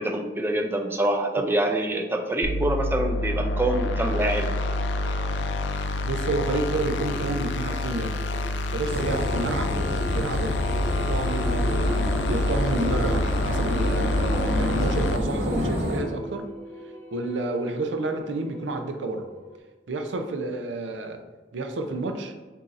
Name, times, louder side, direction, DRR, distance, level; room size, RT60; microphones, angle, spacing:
voice 1, 0.0-4.5, right 1 dB, 10° right, 4 dB, 0.4 m, -25 dB
sound 1, 2.4-15.2, left 2 dB, 75° left, 0.4 m, -27 dB
sound 2, 3.5-19.6, equal, 15° left, 1.1 m, -45 dB
voice 2, 6.0-8.1 8.7-9.8 10.1-10.5 10.9-16.5 17.1-19.3 19.9-21.2 21.5-22.3, right 2 dB, 90° right, 6 dB, 0.5 m, -30 dB
sound 3, 8.9-16.0, equal, 40° right, 1.0 m, -28 dB
7.8 x 2.7 x 2.5 m, 1.3 s
head